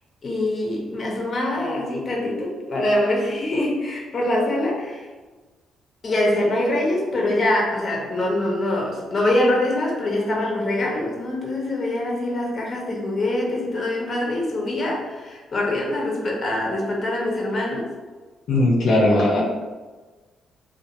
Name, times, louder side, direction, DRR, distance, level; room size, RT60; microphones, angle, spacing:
voice 1, 0.2-5.1 6.0-17.9, left 1 dB, 40° left, -2 dB, 0.8 m, -24 dB
voice 2, 18.5-19.4, left 1 dB, 75° left, -4 dB, 0.6 m, -18 dB
2.7 x 2.4 x 2.6 m, 1.3 s
cardioid pair, 90°, 0 cm